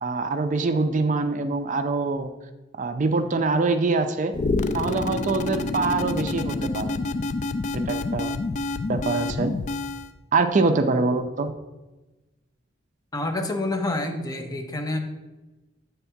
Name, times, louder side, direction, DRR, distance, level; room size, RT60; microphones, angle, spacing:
voice 1, 0.0-2.3 2.7-4.3 4.7-7.0 7.7-8.3 8.9-9.5 10.3-11.5, right 3 dB, 40° right, 8 dB, 0.4 m, -24 dB
sound 1, 4.3-10.1, left 3 dB, 40° left, 0.4 m, -28 dB
voice 2, 13.1-15.0, left 2 dB, 20° left, 4 dB, 0.7 m, -28 dB
8.0 x 3.5 x 5.8 m, 1.1 s
head